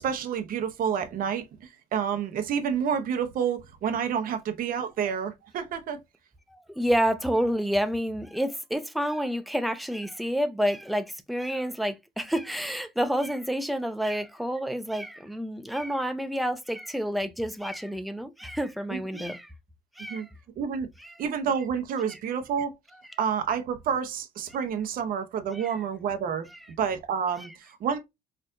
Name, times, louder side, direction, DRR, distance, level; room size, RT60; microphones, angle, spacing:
voice 1, 0.0-6.0 18.9-19.3 20.1-20.3 20.6-20.9 21.2-22.8 23.2-26.5 26.8-28.0, right 7 dB, 55° right, 0.7 m, -29 dB
voice 2, 6.5-19.5 20.0-20.3 25.5-25.7, equal, ahead, 0.6 m, -29 dB
4.3 x 2.5 x 2.5 m
cardioid pair, 110°, 17 cm